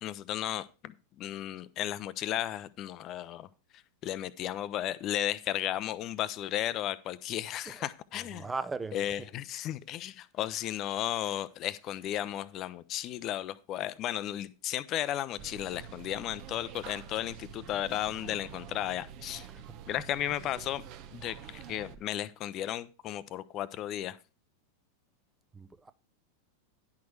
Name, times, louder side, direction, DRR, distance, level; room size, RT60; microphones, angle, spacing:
voice 1, 0.0-3.5 4.0-8.5 8.9-19.5 19.9-20.8 21.1-24.2, left 12 dB, 35° left, 0.6 m, -34 dB
voice 2, 8.3-9.1 25.5-25.9, right 4 dB, 10° right, 0.6 m, -37 dB
sound 1, 15.4-22.0, right 8 dB, 40° right, 0.8 m, -47 dB
10.5 x 6.1 x 4.8 m
figure-of-eight pair, 90°, 0 cm